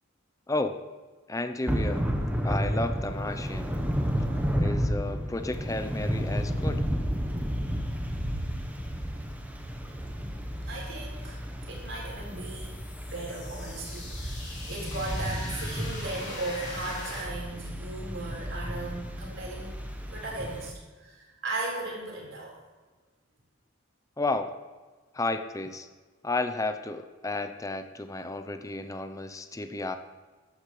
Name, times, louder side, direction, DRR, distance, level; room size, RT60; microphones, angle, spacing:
voice 1, 0.5-0.8 1.3-2.1 2.4-3.7 4.6-6.9 24.2-24.5 25.1-25.9 26.2-30.0, left 2 dB, 15° left, 9 dB, 0.6 m, -32 dB
Thunder / Rain, 1.7-20.7, equal, 10° right, 1.0 m, -32 dB
voice 2, 10.6-11.4 11.7-19.7 20.0-22.6, right 2 dB, 70° right, -3 dB, 4.5 m, -37 dB
sound 1, 11.7-17.2, left 2 dB, 60° left, 3.8 m, -42 dB
14.5 x 12.0 x 3.3 m, 1.3 s
head